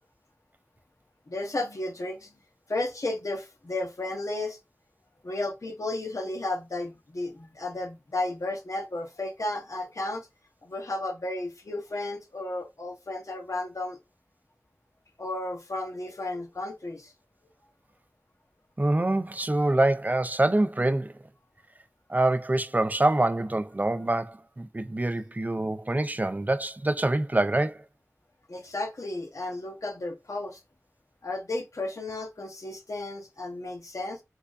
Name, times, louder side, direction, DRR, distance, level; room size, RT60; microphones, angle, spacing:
voice 1, 1.3-2.4 2.7-4.6 5.2-10.3 10.6-14.0 15.2-17.1 28.5-30.6 31.2-34.2, left 2 dB, 80° left, 1.0 m, -33 dB
voice 2, 18.8-21.1 22.1-27.8, right 2 dB, 30° right, 0.4 m, -25 dB
4.4 x 2.5 x 2.5 m
wide cardioid pair, 50°, 5 cm